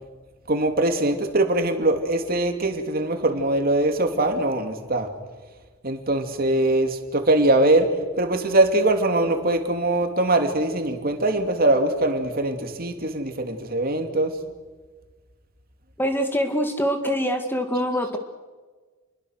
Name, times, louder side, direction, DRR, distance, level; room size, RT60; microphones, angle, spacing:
voice 1, 0.5-5.1 5.8-7.9 8.2-14.3, right 2 dB, 45° right, 5 dB, 2.8 m, -22 dB
voice 2, 16.0-18.2, equal, 10° left, 5 dB, 2.0 m, -24 dB
29.5 x 22.5 x 6.6 m, 1.4 s
head